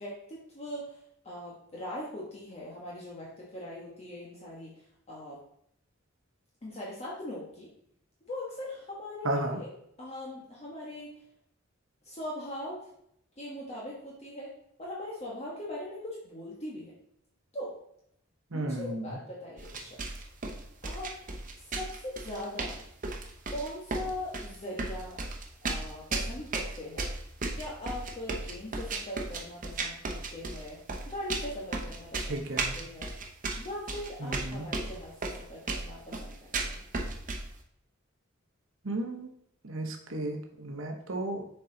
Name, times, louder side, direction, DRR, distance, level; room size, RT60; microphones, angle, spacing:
voice 1, 0.0-5.4 6.6-7.7 8.2-9.7 10.0-11.1 12.0-12.9 13.4-14.5 14.8-16.9 17.5-17.7 18.5-20.0 20.8-21.1 21.6-22.7 23.5-25.2 25.6-27.1 27.5-30.8 31.1-33.1 33.6-36.8, left 1 dB, 35° left, -4 dB, 1.2 m, -40 dB
voice 2, 9.2-9.6 18.5-19.2 32.3-32.7 34.2-34.7 38.8-39.3 39.6-41.4, right 2 dB, 90° right, 3 dB, 1.0 m, -34 dB
sound 1, 19.6-37.5, right 3 dB, 45° right, 0.9 m, -35 dB
7.0 x 4.6 x 3.9 m, 0.72 s
head